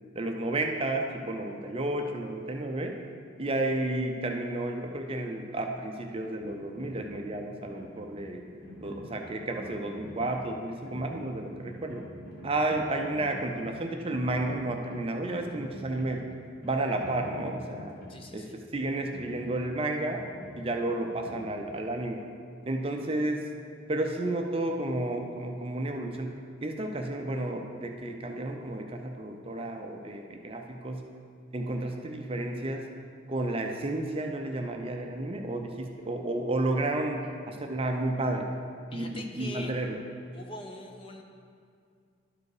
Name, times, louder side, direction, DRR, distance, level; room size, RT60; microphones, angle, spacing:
voice 1, 0.1-2.9 3.4-8.4 8.8-12.0 12.4-16.2 16.6-18.0 18.3-20.2 20.6-22.2 22.7-23.5 23.9-31.1 31.5-32.9 33.3-38.5 38.9-40.0, right 2 dB, 25° right, 3 dB, 0.5 m, -32 dB
sound 1, 6.4-22.1, equal, 50° left, 1.6 m, -47 dB
voice 2, 18.1-18.6 38.9-39.7 40.3-41.2, left 1 dB, 25° left, 3 dB, 0.6 m, -42 dB
12.0 x 4.8 x 4.8 m, 2.2 s
head